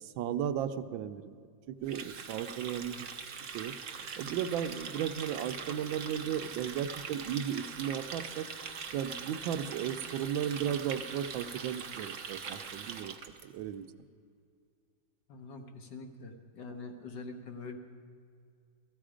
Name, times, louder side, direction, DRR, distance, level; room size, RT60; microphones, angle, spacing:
voice 1, 0.0-3.7 4.2-8.5 8.9-13.1 13.4-13.9, right 9 dB, 85° right, 10 dB, 1.4 m, -35 dB
Water tap faucet, 1.8-13.4, right 6 dB, 55° right, 0.9 m, -42 dB
voice 2, 15.3-17.8, left 3 dB, 65° left, 4 dB, 1.7 m, -44 dB
16.5 x 14.0 x 5.0 m, 2.3 s
omnidirectional pair, 2.1 m